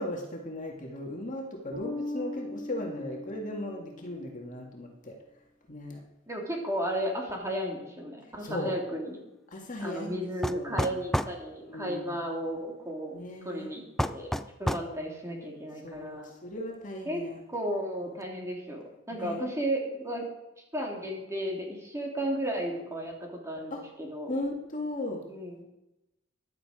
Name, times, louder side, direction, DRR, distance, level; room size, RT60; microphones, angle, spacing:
voice 1, 0.0-5.2 5.7-6.0 8.4-8.7 9.5-11.0 11.7-12.2 13.1-13.7 14.8-15.1 15.8-16.2 16.4-17.4 19.1-19.5 23.7-23.8 24.3-25.2, left 1 dB, 40° left, 0 dB, 2.3 m, -37 dB
Bass guitar, 1.7-4.4, left 1 dB, 50° right, 4.9 m, -39 dB
voice 2, 6.3-9.2 9.8-14.3 14.6-16.3 17.0-17.2 17.5-20.2 20.7-23.1 23.4-24.3 25.3-25.6, right 1 dB, 15° right, 0 dB, 2.9 m, -34 dB
sound 1, 10.4-11.4 14.0-14.9, equal, ahead, 0.4 m, -29 dB
15.0 x 11.5 x 5.1 m, 0.93 s
head